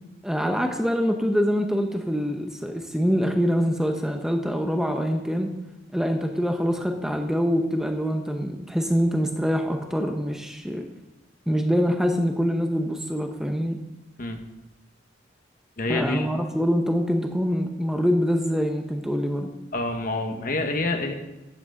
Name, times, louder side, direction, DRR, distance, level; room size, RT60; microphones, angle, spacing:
voice 1, 0.2-5.6 5.9-10.9 11.5-13.8 15.9-19.5, equal, 5° right, 4 dB, 0.8 m, -25 dB
voice 2, 15.8-16.3 19.7-21.1, left 2 dB, 50° left, 5 dB, 1.4 m, -27 dB
12.0 x 6.1 x 7.6 m, 1.0 s
head